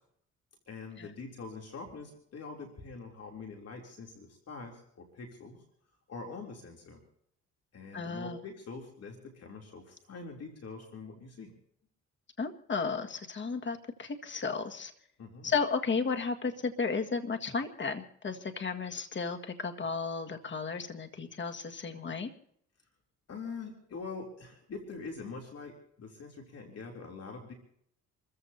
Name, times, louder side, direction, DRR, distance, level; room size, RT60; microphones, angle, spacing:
voice 1, 0.7-5.6 6.1-7.0 7.7-11.5 15.2-15.5 23.3-27.5, left 4 dB, 55° left, 1 dB, 3.1 m, -44 dB
voice 2, 7.9-8.4 12.4-14.9 15.4-22.3, left 5 dB, 40° left, 6 dB, 1.8 m, -34 dB
28.0 x 15.0 x 2.8 m, 0.70 s
cardioid pair, 90°, 30 cm